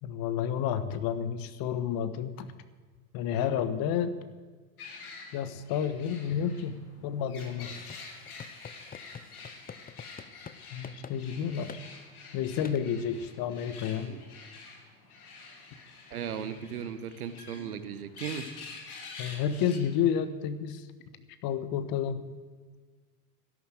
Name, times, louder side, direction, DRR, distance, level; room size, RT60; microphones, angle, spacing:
voice 1, 0.0-2.5 3.1-4.2 5.3-7.8 10.7-11.8 12.3-14.1 19.2-20.9 21.4-22.3, left 8 dB, 50° left, 12 dB, 1.5 m, -30 dB
sound 1, 4.8-20.2, left 4 dB, 80° left, 3.0 m, -48 dB
sound 2, 7.7-10.6 10.8-11.2 11.7-11.8 12.6-12.8, left 7 dB, 20° left, 0.8 m, -46 dB
voice 2, 16.1-18.5, right 8 dB, 80° right, 12 dB, 1.3 m, -37 dB
12.5 x 11.5 x 7.8 m, 1.5 s
hypercardioid pair, 75°, 44 cm